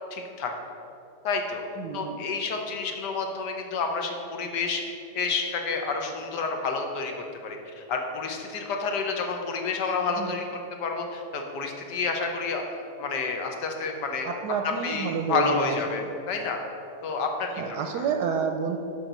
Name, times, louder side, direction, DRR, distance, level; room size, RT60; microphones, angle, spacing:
voice 1, 0.1-0.5 1.2-1.6 1.9-7.1 7.4-10.5 10.8-12.6 13.0-14.4 14.8-16.6 17.0-18.0, left 4 dB, 85° left, 3 dB, 1.5 m, -29 dB
voice 2, 1.8-2.2 10.1-10.3 14.2-16.1 17.6-18.8, right 6 dB, 90° right, 5 dB, 1.2 m, -29 dB
7.0 x 5.7 x 6.6 m, 2.7 s
omnidirectional pair, 1.8 m